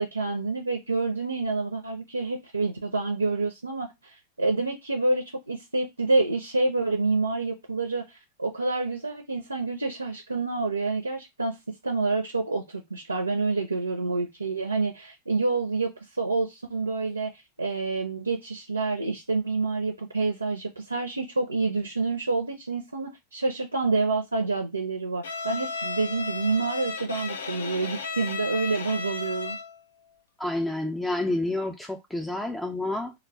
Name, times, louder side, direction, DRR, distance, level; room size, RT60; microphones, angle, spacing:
voice 1, 0.0-11.5 11.8-17.3 17.6-29.6, right 3 dB, 90° right, 0.5 m, -28 dB
Bowed string instrument, 25.2-29.8, left 4 dB, 70° left, 0.4 m, -34 dB
voice 2, 30.4-33.1, left 2 dB, 5° left, 0.4 m, -29 dB
2.2 x 2.1 x 3.5 m
figure-of-eight pair, 95°, 0 cm